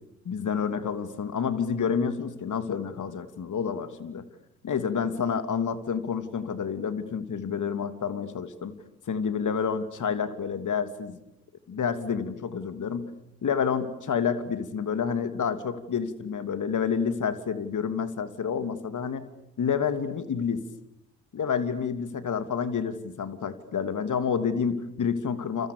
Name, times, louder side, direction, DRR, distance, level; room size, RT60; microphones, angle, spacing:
voice 1, 0.2-4.2 4.6-8.7 9.1-11.2 11.7-13.1 13.4-19.2 19.6-20.6 21.3-25.7, left 6 dB, 45° left, 10 dB, 3.0 m, -29 dB
29.5 x 29.0 x 6.8 m, 0.82 s
figure-of-eight pair, 50°, 43 cm